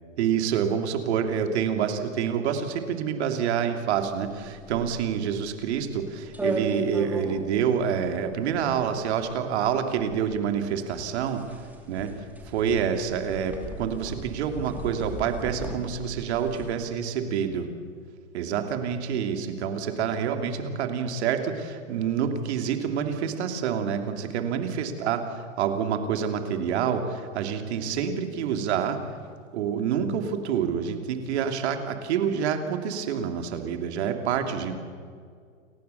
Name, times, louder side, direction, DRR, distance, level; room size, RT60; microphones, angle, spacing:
voice 1, 0.2-11.4 11.9-12.1 12.4-17.7 18.3-25.2 25.6-29.0 29.5-34.7, right 7 dB, 55° right, 6 dB, 3.1 m, -27 dB
sound 1, 4.0-16.8, right 2 dB, 5° right, 2.9 m, -37 dB
29.5 x 15.0 x 7.0 m, 2.1 s
hypercardioid pair, 130°, 39 cm